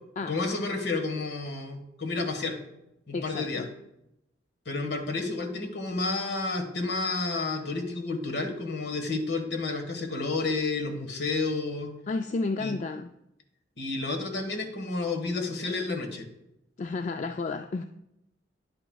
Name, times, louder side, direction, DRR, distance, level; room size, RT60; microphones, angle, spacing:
voice 1, 0.3-2.6 3.1-3.6 4.6-11.9 12.6-12.7 13.8-16.2, left 3 dB, 65° left, 4 dB, 1.5 m, -30 dB
voice 2, 3.1-3.7 12.1-13.1 16.8-17.9, left 3 dB, 40° left, 7 dB, 0.3 m, -31 dB
10.0 x 9.7 x 2.3 m, 0.85 s
head